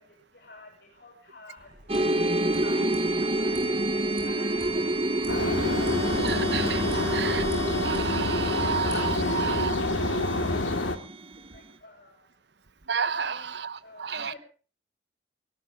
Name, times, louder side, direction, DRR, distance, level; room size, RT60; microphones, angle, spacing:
voice 1, 0.0-6.7 11.4-12.3 13.1-13.5 13.8-14.4, left 2 dB, 55° left, -1 dB, 7.7 m, -51 dB
sound 1, 1.6-9.0, right 2 dB, 45° right, 7.1 m, -48 dB
sound 2, 1.9-11.6, right 1 dB, 30° right, 1.2 m, -29 dB
sound 3, 5.3-11.0, left 2 dB, 80° left, 2.5 m, -27 dB
voice 2, 6.2-7.5 7.8-9.8 12.9-14.4, right 6 dB, 60° right, 15 dB, 1.0 m, -31 dB
19.0 x 18.0 x 3.7 m, 0.39 s
head